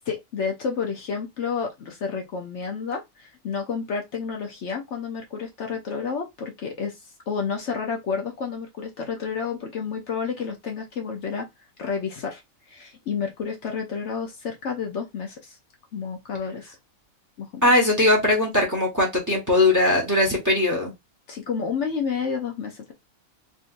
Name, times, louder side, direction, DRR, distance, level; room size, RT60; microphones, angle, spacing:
voice 1, 0.1-7.0 7.3-11.5 11.8-12.4 12.7-15.6 15.9-16.8 17.4-17.7 21.3-22.9, left 6 dB, 65° left, 1.0 m, -30 dB
voice 2, 17.6-20.9, left 1 dB, 15° right, 1.1 m, -20 dB
3.8 x 2.6 x 2.5 m
omnidirectional pair, 1.4 m